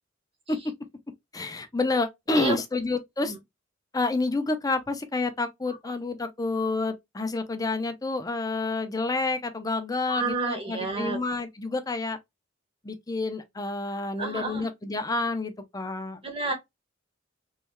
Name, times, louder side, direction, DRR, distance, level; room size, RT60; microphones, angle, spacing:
voice 1, 1.3-3.3 3.9-12.2 12.8-16.2, left 3 dB, 20° left, 0.5 m, -29 dB
voice 2, 10.0-11.2 14.2-14.7 16.2-16.5, right 3 dB, 30° right, 1.2 m, -30 dB
3.3 x 3.1 x 2.2 m
head